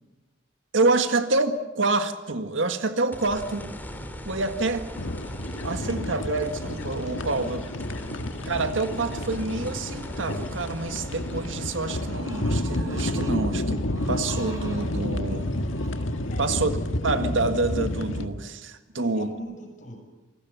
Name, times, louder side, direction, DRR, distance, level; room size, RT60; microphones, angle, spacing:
voice 1, 0.7-3.7 4.2-4.9 5.6-7.7 8.4-13.8 14.1-15.5 16.4-16.7 17.0-19.3, right 3 dB, 80° right, 8 dB, 1.8 m, -27 dB
sound 1, 3.1-15.4 15.9-16.0 19.3-19.4, equal, 10° left, 2.8 m, -41 dB
sound 2, 4.9-18.3, left 1 dB, 85° left, 1.7 m, -30 dB
voice 2, 7.2-8.3 16.2-16.6 18.9-20.0, equal, 40° left, 3 dB, 7.2 m, -43 dB
sound 3, 11.6-16.6, right 1 dB, 15° right, 6.3 m, -47 dB
28.0 x 20.0 x 7.1 m, 1.1 s
head